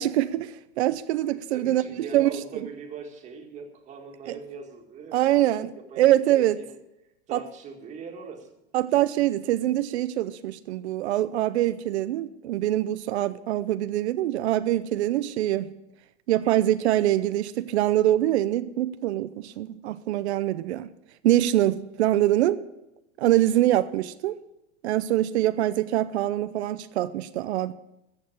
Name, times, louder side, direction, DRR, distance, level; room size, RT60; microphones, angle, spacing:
voice 1, 0.0-2.3 4.3-4.4 5.1-6.6 7.3-7.4 8.7-15.7 16.3-20.9 21.2-22.6 23.2-24.3 24.8-27.7, right 13 dB, 85° right, 0.7 m, -24 dB
voice 2, 1.3-5.4 5.9-6.0 6.3-6.8 7.3-8.5 23.5-23.8, right 5 dB, 20° right, 1.8 m, -41 dB
14.5 x 6.7 x 8.6 m
supercardioid pair, 160°, 32 cm